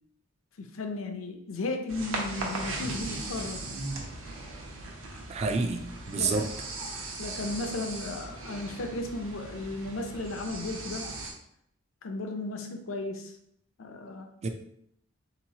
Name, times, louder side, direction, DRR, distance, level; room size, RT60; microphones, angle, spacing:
voice 1, 0.6-3.6 6.2-6.5 7.2-11.1 12.0-13.4 13.8-14.3, left 2 dB, 75° left, 4 dB, 0.5 m, -35 dB
sound 1, 1.9-11.3, right 2 dB, 75° right, 0.8 m, -38 dB
voice 2, 5.3-6.5 14.4-14.5, right 4 dB, 30° right, 6 dB, 0.3 m, -29 dB
3.8 x 2.9 x 2.7 m, 0.72 s
head